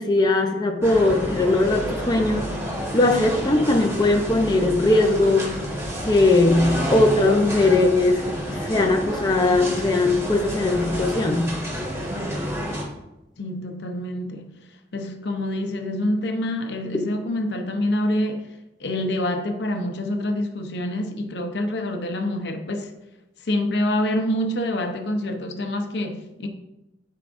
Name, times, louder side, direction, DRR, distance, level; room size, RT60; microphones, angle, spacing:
voice 1, 0.0-2.5 2.9-5.5 6.1-11.5, left 2 dB, 25° left, 0.6 m, -20 dB
sound 1, 0.8-12.8, equal, 15° right, 1.4 m, -29 dB
voice 2, 13.4-14.5 14.9-18.5 18.8-22.9 23.4-26.5, left 1 dB, 70° left, 0.7 m, -26 dB
11.5 x 4.8 x 2.6 m
head